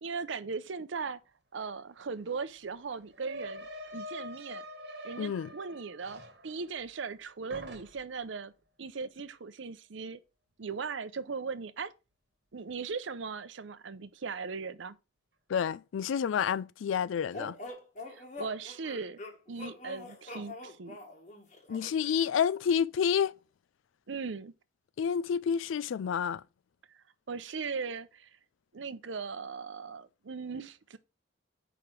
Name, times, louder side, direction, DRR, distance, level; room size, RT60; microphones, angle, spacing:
voice 1, 0.0-1.2 1.5-4.6 5.0-8.5 8.8-10.2 10.6-11.9 12.5-15.0 18.1-19.2 19.5-21.0 24.1-24.5 27.3-28.3 28.7-31.0, right 5 dB, 80° right, 0.6 m, -38 dB
sound 1, 1.6-1.7 2.0-7.2 7.5-8.2, left 1 dB, 60° right, 1.3 m, -46 dB
voice 2, 5.2-5.5 15.5-17.6 21.7-23.3 25.0-26.4, left 7 dB, 90° left, 0.3 m, -29 dB
sound 2, 17.3-22.2, left 2 dB, 40° left, 1.4 m, -44 dB
5.0 x 4.9 x 5.9 m
head